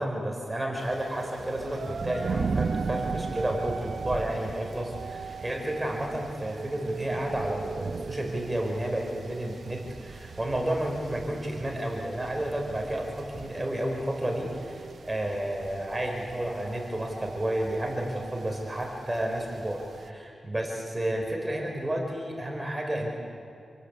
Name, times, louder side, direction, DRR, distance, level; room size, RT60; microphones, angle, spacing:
voice 1, 0.0-23.1, right 1 dB, 20° right, 1 dB, 5.1 m, -31 dB
sound 1, 0.8-20.1, right 4 dB, 70° right, 1.0 m, -38 dB
29.0 x 20.0 x 8.4 m, 2.5 s
cardioid pair, 65°, 0 cm